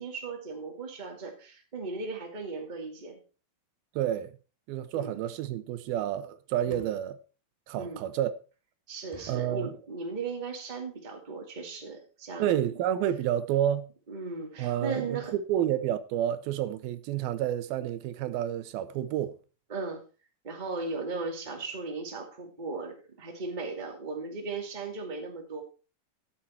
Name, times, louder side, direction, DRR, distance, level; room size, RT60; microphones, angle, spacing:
voice 1, 0.0-3.2 5.0-5.2 6.6-6.9 7.7-8.0 8.9-12.8 14.1-15.3 19.7-20.0 20.4-25.6, right 3 dB, 15° right, 1.8 m, -37 dB
voice 2, 4.0-4.4 4.7-7.2 7.7-8.3 9.3-9.7 12.4-13.9 14.6-19.4, right 11 dB, 85° right, 2.7 m, -29 dB
sound 1, 5.5-5.7 6.4-7.1 7.7-7.8 8.1-8.2 8.5-8.6 9.1-9.6 10.2-10.5 10.8-10.9 11.1-11.4 11.9-12.0 12.2-12.4 12.7-12.8 13.0-13.1, left 1 dB, 60° left, 0.3 m, -54 dB
13.0 x 7.5 x 4.4 m
omnidirectional pair, 4.2 m